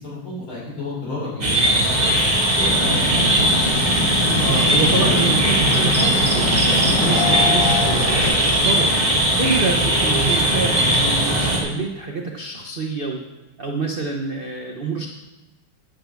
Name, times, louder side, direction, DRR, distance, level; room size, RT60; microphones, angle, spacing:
voice 1, 0.0-2.1 2.6-3.6 4.6-4.7 5.0-5.2, left 2 dB, 75° left, -6 dB, 4.6 m, -31 dB
sound 1, 1.4-11.6, right 1 dB, 20° right, 1.9 m, -19 dB
sound 2, 1.8-11.6, right 3 dB, 40° right, 1.1 m, -31 dB
sound 3, 2.6-8.2, left 2 dB, 40° left, 3.1 m, -25 dB
voice 2, 2.8-3.2 4.4-9.1 9.4-13.2 13.6-15.1, right 3 dB, 90° right, 1 dB, 0.4 m, -27 dB
9.8 x 5.7 x 7.1 m, 1.1 s
omnidirectional pair, 2.3 m